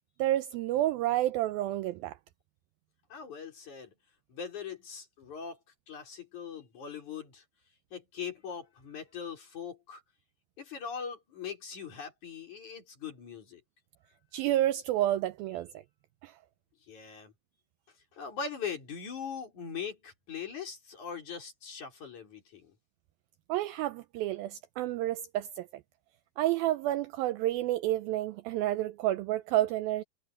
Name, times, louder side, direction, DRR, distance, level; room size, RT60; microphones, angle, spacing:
voice 1, 0.2-2.2 14.3-15.8 16.2-16.3 23.5-25.7 26.4-30.0, right 14 dB, 80° right, 2.2 m, -30 dB
voice 2, 3.1-3.9 4.3-5.6 5.9-7.4 7.9-10.0 10.6-13.6 16.9-17.3 18.1-22.7, left 6 dB, 50° left, 5.8 m, -41 dB
omnidirectional pair, 4.7 m